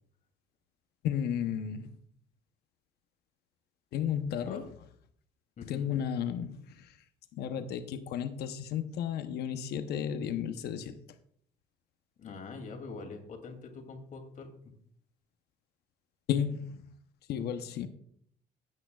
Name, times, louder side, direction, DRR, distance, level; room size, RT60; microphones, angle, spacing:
voice 1, 1.0-1.9 3.9-4.7 5.6-7.0 7.4-11.0 16.3-16.9 17.3-17.9, left 8 dB, 75° left, 0.9 m, -33 dB
voice 2, 5.6-5.9 12.2-14.5, left 4 dB, 50° left, 2.8 m, -44 dB
16.5 x 8.7 x 2.4 m
cardioid pair, 110°, 17 cm